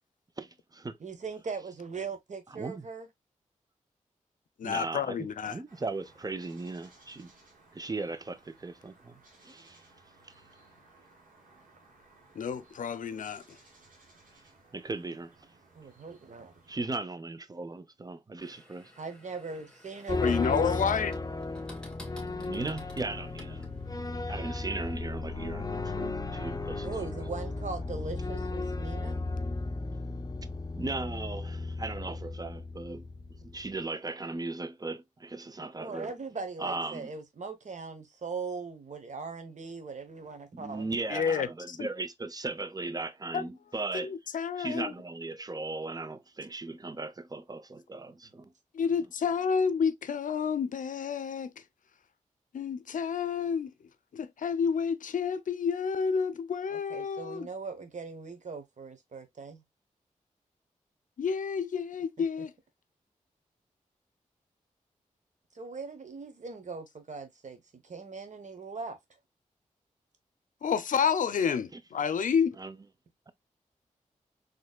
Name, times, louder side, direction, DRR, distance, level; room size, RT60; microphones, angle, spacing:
voice 1, 0.4-1.0 2.5-2.8 4.6-7.3 7.7-9.8 10.2-10.3 14.7-15.3 16.7-18.9 22.4-23.7 24.3-27.2 30.8-33.1 33.3-36.1 36.6-37.1 40.5-44.1 44.6-48.5 71.7-71.8 72.6-72.8 73.3-73.4, right 3 dB, 25° right, 0.6 m, -37 dB
voice 2, 1.0-3.1 15.7-16.5 19.0-20.8 26.8-29.2 35.8-40.9 56.7-59.6 65.5-69.0, right 4 dB, 60° right, 1.1 m, -40 dB
voice 3, 4.6-5.5 12.4-13.4 20.2-21.1 41.1-41.9 43.3-43.4 43.9-44.9 48.7-51.5 52.5-53.7 54.1-57.5 61.2-62.5 70.6-72.6, left 6 dB, 70° left, 0.5 m, -29 dB
sound 1, 5.7-16.7, right 2 dB, 80° right, 2.0 m, -60 dB
sound 2, 18.4-24.1, left 1 dB, 5° left, 1.8 m, -54 dB
sound 3, 20.1-33.8, left 3 dB, 25° left, 0.6 m, -35 dB
4.2 x 3.2 x 2.2 m
cardioid pair, 40°, 14 cm